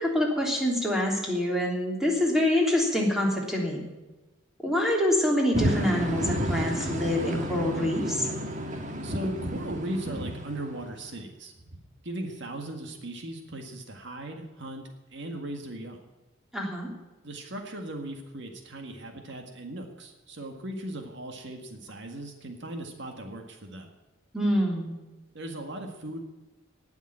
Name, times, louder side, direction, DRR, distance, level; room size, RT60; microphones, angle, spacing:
voice 1, 0.0-3.8 4.6-8.3 16.5-16.9 24.3-24.9, left 1 dB, ahead, -1 dB, 3.3 m, -26 dB
sound 1, 5.5-11.2, right 1 dB, 40° right, 1.6 m, -31 dB
voice 2, 9.0-11.8 12.0-16.0 17.2-23.9 25.3-26.2, right 1 dB, 60° right, 4 dB, 1.8 m, -38 dB
19.0 x 7.2 x 8.9 m, 1.1 s
head